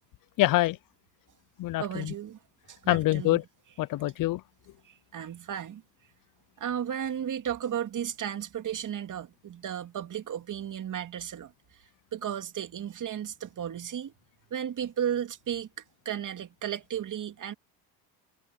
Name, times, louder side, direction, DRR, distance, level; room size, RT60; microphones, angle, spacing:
voice 1, 0.4-0.8 1.6-2.1 2.9-3.4 3.8-4.4, left 17 dB, 50° left, 0.6 m, -25 dB
voice 2, 1.8-2.4 2.7-3.4 4.8-5.8 6.6-11.5 12.1-14.1 14.5-15.7 16.0-17.5, right 9 dB, 45° right, 2.4 m, -34 dB
supercardioid pair, 85°, 44 cm